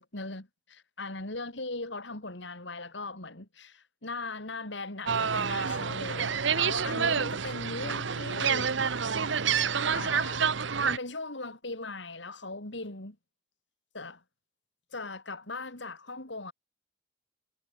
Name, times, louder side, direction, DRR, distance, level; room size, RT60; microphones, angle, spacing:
voice 1, 0.0-8.8 9.1-9.3 9.9-10.5 10.8-13.1 13.9-14.2 14.9-16.5, left 3 dB, 70° left, 3.8 m, -39 dB
sound 1, 5.1-11.0, right 6 dB, 70° right, 1.0 m, -28 dB
head